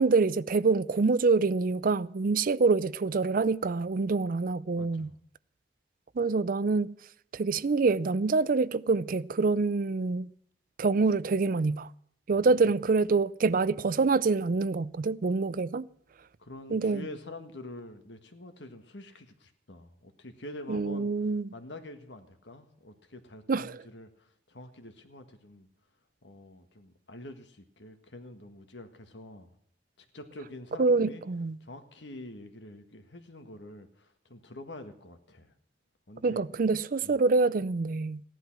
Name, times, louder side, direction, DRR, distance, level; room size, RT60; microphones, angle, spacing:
voice 1, 0.0-5.1 6.2-6.9 7.3-10.3 10.8-11.9 12.3-15.8 16.7-17.0 20.7-21.5 23.5-23.8 30.8-31.6 36.2-38.2, right 4 dB, 50° right, 0.5 m, -26 dB
voice 2, 4.8-5.1 12.3-12.7 16.4-21.1 21.5-25.7 26.2-29.5 30.0-31.2 31.6-35.5 36.1-36.4 37.0-37.1, left 1 dB, 85° left, 1.7 m, -46 dB
15.5 x 11.0 x 6.1 m
head